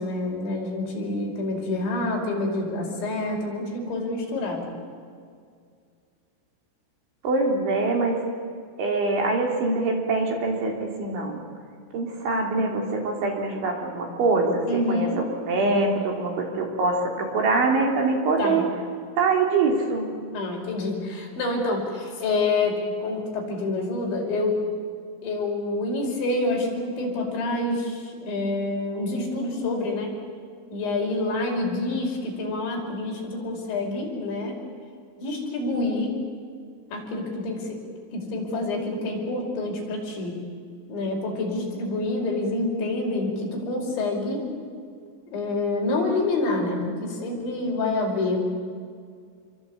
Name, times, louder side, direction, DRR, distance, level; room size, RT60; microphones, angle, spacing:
voice 1, 0.0-4.6 14.7-15.2 18.4-18.6 20.3-24.6 25.2-30.1 30.7-34.6 35.2-36.1 36.9-37.8 38.1-40.4 40.9-44.4 45.3-48.4, left 2 dB, 60° left, 0 dB, 7.5 m, -27 dB
voice 2, 7.2-8.2 8.8-11.4 11.9-18.7 19.2-20.1, right 3 dB, 65° right, 1 dB, 5.8 m, -24 dB
28.0 x 23.5 x 8.8 m, 2.2 s
omnidirectional pair, 5.9 m